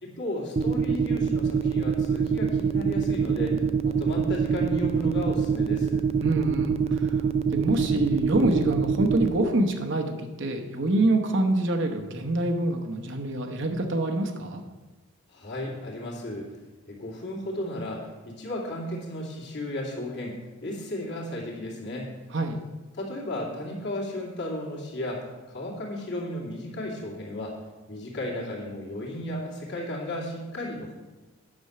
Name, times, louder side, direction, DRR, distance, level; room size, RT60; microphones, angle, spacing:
voice 1, 0.0-6.1 15.3-16.5 16.9-22.1 22.9-27.6 27.9-30.9, left 1 dB, 50° left, -3 dB, 2.5 m, -34 dB
sound 1, 0.6-9.3, right 6 dB, 30° right, 0.3 m, -24 dB
voice 2, 6.2-14.6 22.3-22.6, right 1 dB, 55° right, 3 dB, 1.0 m, -26 dB
9.7 x 6.1 x 6.7 m, 1.2 s
head